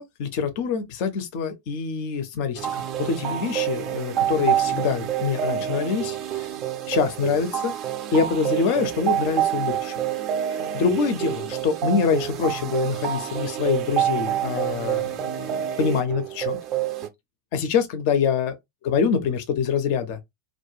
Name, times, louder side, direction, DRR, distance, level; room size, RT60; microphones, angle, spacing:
voice 1, 0.0-2.7 3.0-6.5 6.9-7.7 8.1-10.0 10.7-16.6 17.5-18.5 18.8-20.2, left 6 dB, 45° left, 0.5 m, -25 dB
sound 1, 2.5-17.1, right 11 dB, 35° right, 0.4 m, -27 dB
2.3 x 2.1 x 2.9 m
figure-of-eight pair, 90°, 0 cm